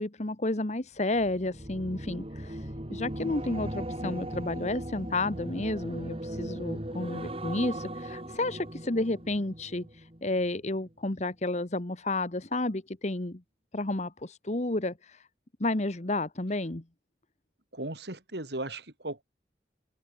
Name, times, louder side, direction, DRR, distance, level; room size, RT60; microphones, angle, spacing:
voice 1, 0.0-13.4 13.7-15.3 15.6-16.8, left 2 dB, 40° left, 1.3 m, -31 dB
sound 1, 1.1-10.5 10.8-11.2, right 1 dB, 30° right, 4.6 m, -38 dB
voice 2, 17.7-19.2, right 2 dB, 65° right, 3.3 m, -36 dB
head